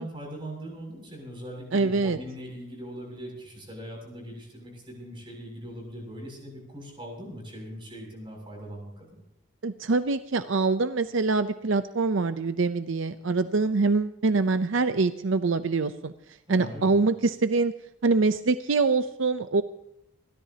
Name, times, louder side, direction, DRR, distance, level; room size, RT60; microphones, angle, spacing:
voice 1, 0.0-9.2 16.5-16.9, equal, 25° right, 0 dB, 7.2 m, -40 dB
voice 2, 1.7-2.2 9.6-16.1 16.5-17.7 18.0-19.6, right 3 dB, 75° right, 11 dB, 0.6 m, -24 dB
30.0 x 13.5 x 2.9 m, 0.81 s
head